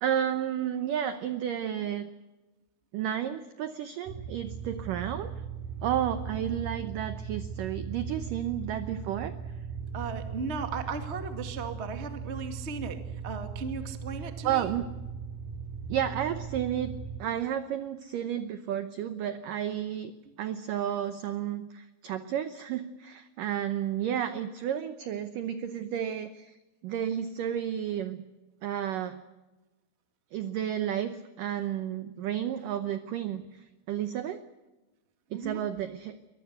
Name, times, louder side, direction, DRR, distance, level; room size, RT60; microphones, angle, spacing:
voice 1, 0.0-2.1 2.9-5.3 5.8-9.4 14.4-14.9 15.9-16.9 17.2-20.1 20.4-26.5 26.8-28.2 28.6-29.2 30.3-34.4 35.3-36.2, right 10 dB, 80° right, 10 dB, 1.9 m, -32 dB
sound 1, 4.1-17.2, right 6 dB, 55° right, 4.6 m, -38 dB
voice 2, 9.9-14.7 20.2-20.3 35.3-35.6, right 5 dB, 40° right, 7 dB, 0.9 m, -37 dB
23.5 x 20.5 x 8.2 m, 1.1 s
omnidirectional pair, 5.1 m